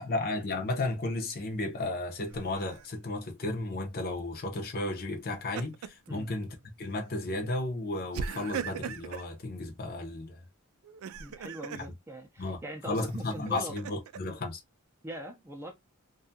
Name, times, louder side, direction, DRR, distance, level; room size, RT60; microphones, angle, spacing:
voice 1, 0.0-10.5 11.8-11.9 12.4-12.6 12.8-14.6, left 2 dB, 45° left, 0.7 m, -34 dB
Laughter, 2.3-2.9 5.1-6.1 6.5-6.7 8.1-9.3 10.8-11.9 12.9-14.2, right 7 dB, 85° right, 0.3 m, -39 dB
voice 2, 11.2-13.7 15.0-15.7, right 1 dB, 10° right, 0.4 m, -41 dB
2.6 x 2.3 x 2.6 m
head